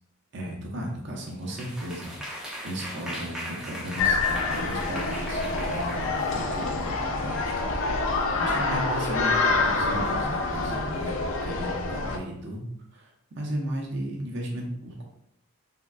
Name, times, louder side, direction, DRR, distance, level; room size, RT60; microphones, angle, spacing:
voice 1, 0.3-2.1 2.4-7.7 8.4-11.2 11.4-12.6 12.9-15.0, equal, 55° right, 0 dB, 0.6 m, -35 dB
sound 1, 1.3-7.8 8.2-8.5 8.9-10.1 10.5-11.0, equal, 5° right, 0.4 m, -40 dB
sound 2, 4.0-12.2, left 3 dB, 65° left, 0.3 m, -27 dB
3.5 x 2.2 x 2.3 m, 0.75 s
head